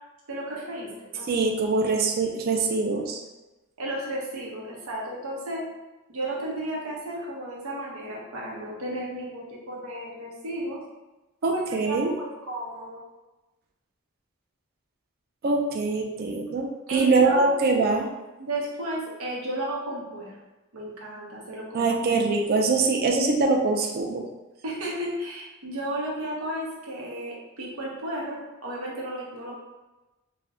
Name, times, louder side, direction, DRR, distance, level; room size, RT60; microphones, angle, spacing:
voice 1, 0.3-1.3 3.8-5.6 6.1-10.8 11.4-13.0 16.9-17.7 18.4-20.3 20.7-21.9 24.6-29.6, right 1 dB, 90° right, -3 dB, 0.8 m, -33 dB
voice 2, 1.3-3.2 11.4-12.1 15.4-18.1 21.7-24.2, right 3 dB, 45° right, 2 dB, 0.3 m, -23 dB
2.6 x 2.1 x 3.4 m, 1.1 s
head